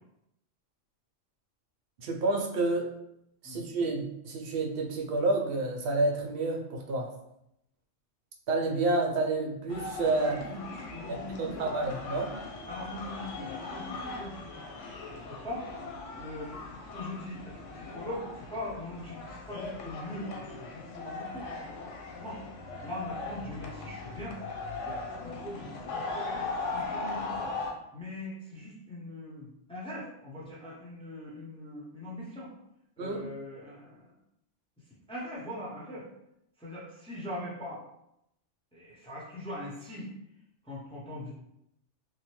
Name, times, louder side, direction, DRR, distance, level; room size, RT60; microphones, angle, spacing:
voice 1, 2.0-2.9 3.4-7.1 8.5-10.5 11.1-12.3 33.0-33.3, right 2 dB, 60° right, 1 dB, 0.7 m, -29 dB
sound 1, 9.7-27.7, left 3 dB, 90° left, 1.0 m, -39 dB
voice 2, 10.9-11.6 12.7-14.4 15.3-15.7 16.2-21.5 22.2-22.4 22.8-24.4 24.8-25.0 25.2-26.3 26.7-27.5 27.9-32.5 33.0-34.1 35.1-36.0 36.6-37.8 38.7-40.1 40.7-41.3, left 1 dB, 5° left, -6 dB, 0.5 m, -41 dB
2.9 x 2.1 x 3.0 m, 0.80 s
omnidirectional pair, 1.3 m